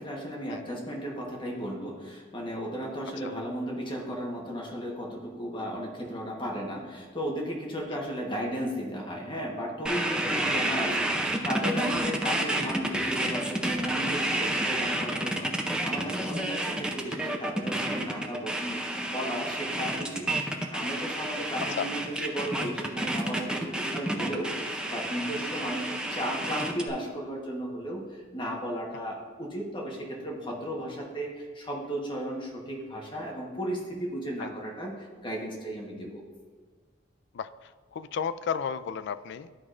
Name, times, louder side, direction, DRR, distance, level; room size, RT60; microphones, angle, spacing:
voice 1, 0.0-36.2, equal, 25° left, -2 dB, 1.1 m, -35 dB
sound 1, 9.9-26.9, right 1 dB, 5° right, 0.5 m, -30 dB
voice 2, 37.3-39.6, left 7 dB, 60° left, 13 dB, 0.3 m, -34 dB
12.5 x 4.8 x 2.5 m, 1.5 s
head